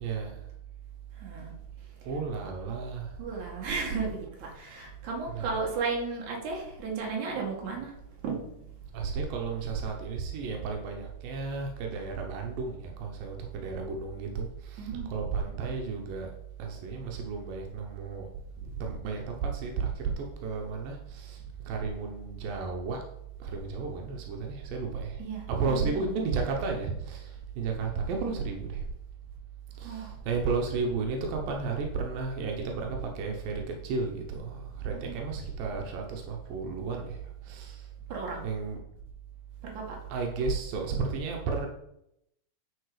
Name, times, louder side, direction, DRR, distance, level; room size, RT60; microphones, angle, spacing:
voice 1, 0.0-0.4 2.1-3.1 5.4-5.5 8.9-16.3 16.6-18.3 18.8-23.0 23.4-25.2 25.5-28.8 29.8-37.8 38.4-38.8 40.1-41.7, right 4 dB, 90° right, 1 dB, 2.7 m, -33 dB
voice 2, 1.2-1.5 2.0-2.2 3.2-7.9 8.2-8.7 14.8-15.2 18.6-18.9 25.2-26.1 29.8-30.2 34.9-35.5 38.1-38.5 39.6-40.1, right 4 dB, 65° right, -1 dB, 3.1 m, -35 dB
9.3 x 4.4 x 4.9 m, 0.79 s
omnidirectional pair, 3.9 m